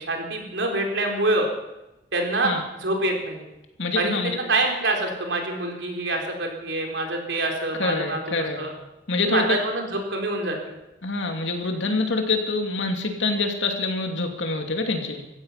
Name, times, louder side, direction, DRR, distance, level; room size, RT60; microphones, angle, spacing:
voice 1, 0.0-1.5 2.1-2.5 2.8-3.4 4.0-8.7 9.2-10.7, right 2 dB, 70° right, 2 dB, 4.1 m, -26 dB
voice 2, 3.8-4.4 7.8-8.7 9.1-9.4 11.0-15.2, left 3 dB, 70° left, 4 dB, 2.7 m, -26 dB
16.5 x 15.0 x 5.8 m, 0.94 s
head